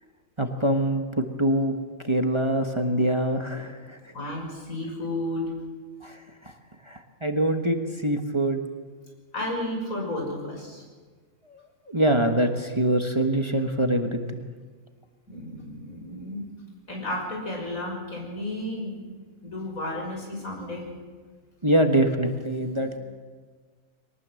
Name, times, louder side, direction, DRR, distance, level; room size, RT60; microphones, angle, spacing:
voice 1, 0.4-1.7 2.0-4.0 6.0-6.5 6.9-8.6 11.5-11.6 11.9-14.4 21.6-23.0, right 1 dB, 20° right, 4 dB, 1.4 m, -24 dB
voice 2, 4.1-5.5 9.3-10.8 15.3-16.4 16.9-19.0 19.4-20.9 22.7-22.9, left 1 dB, 80° left, 0 dB, 6.5 m, -32 dB
23.0 x 19.0 x 7.7 m, 1.5 s
omnidirectional pair, 1.4 m